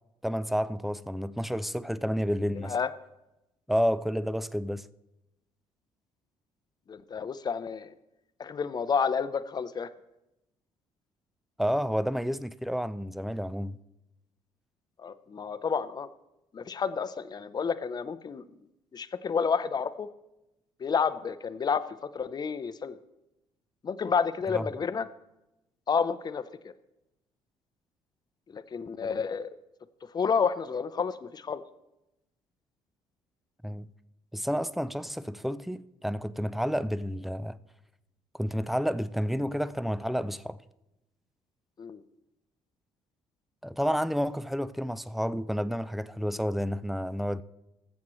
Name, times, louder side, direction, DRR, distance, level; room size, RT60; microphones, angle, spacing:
voice 1, 0.2-2.8 3.7-4.9 11.6-13.8 24.5-24.6 33.6-33.9 34.3-37.6 38.3-40.6 43.6-47.4, equal, ahead, 0.5 m, -30 dB
voice 2, 6.9-7.9 8.4-9.9 15.0-16.1 16.5-18.4 18.9-20.1 20.8-23.0 23.8-25.1 25.9-26.4 28.5-29.6 30.1-31.6 41.8-42.0, left 6 dB, 35° left, 0.7 m, -30 dB
21.0 x 7.2 x 3.1 m
supercardioid pair, 75°, 12 cm